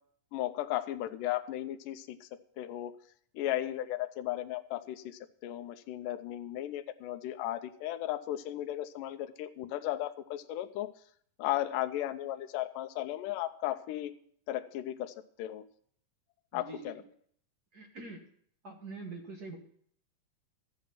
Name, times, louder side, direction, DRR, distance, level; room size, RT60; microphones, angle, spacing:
voice 1, 0.3-2.3 2.6-3.0 3.4-10.9 11.4-14.1 14.5-15.6 16.5-17.0, left 13 dB, 80° left, 9 dB, 2.2 m, -35 dB
voice 2, 16.5-17.0 17.7-18.2 18.6-19.6, right 3 dB, 40° right, 1 dB, 1.5 m, -44 dB
13.5 x 8.2 x 5.7 m, 0.62 s
omnidirectional pair, 3.9 m